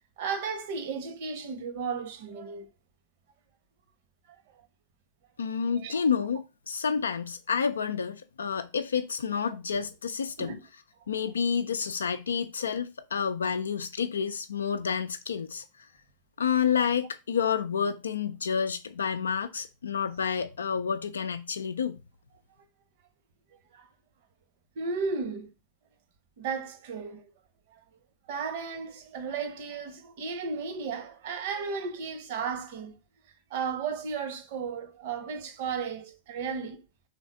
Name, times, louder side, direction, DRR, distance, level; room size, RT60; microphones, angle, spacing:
voice 1, 0.2-2.7 5.8-6.0 10.4-10.6 23.7-23.9 24.8-25.5 26.4-27.2 27.7-27.8 28.3-33.0 33.5-36.8, right 5 dB, 50° right, 1.0 m, -34 dB
voice 2, 5.4-10.6 11.1-15.9 16.4-22.0, left 6 dB, 70° left, 0.4 m, -29 dB
5.1 x 3.9 x 5.1 m
figure-of-eight pair, 90°, 0 cm